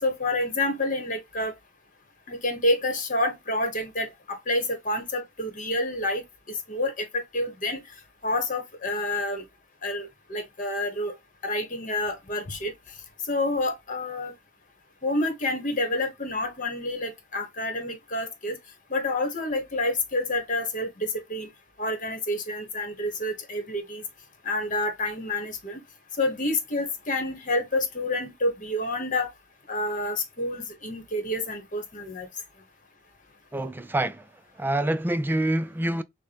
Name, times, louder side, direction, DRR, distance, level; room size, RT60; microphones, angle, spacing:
voice 1, 0.0-1.5 2.3-7.8 8.2-9.4 9.8-11.1 11.4-12.7 13.2-14.3 15.0-18.6 18.9-21.5 21.8-24.0 24.4-25.8 26.2-29.3 29.7-32.3, left 2 dB, 45° left, 1.4 m, -28 dB
voice 2, 33.5-34.3 34.6-36.0, right 1 dB, 10° right, 0.4 m, -26 dB
6.4 x 2.2 x 3.5 m
head